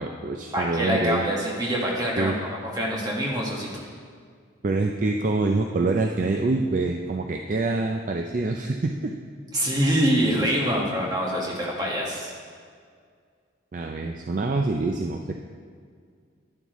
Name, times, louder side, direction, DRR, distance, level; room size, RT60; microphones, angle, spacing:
voice 1, 0.0-1.3 2.2-2.3 4.6-9.1 11.8-11.9 13.7-15.4, right 3 dB, 40° right, 3 dB, 0.4 m, -26 dB
voice 2, 0.5-2.5 2.7-3.8 9.5-12.3, equal, 20° right, -3 dB, 1.5 m, -25 dB
11.0 x 9.9 x 3.1 m, 2.1 s
head